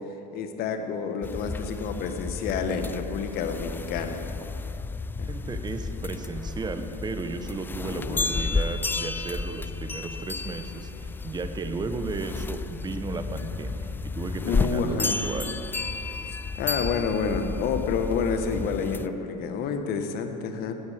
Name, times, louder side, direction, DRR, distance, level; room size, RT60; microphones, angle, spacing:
voice 1, 0.3-4.3 5.2-5.3 7.9-8.4 14.4-15.2 16.6-20.7, left 5 dB, 45° left, 7 dB, 1.5 m, -29 dB
sound 1, 1.2-19.1, left 3 dB, 10° left, 0.4 m, -32 dB
voice 2, 5.3-15.5, right 3 dB, 20° right, 8 dB, 1.2 m, -34 dB
18.0 x 17.5 x 3.7 m, 3.0 s
figure-of-eight pair, 75°, 21 cm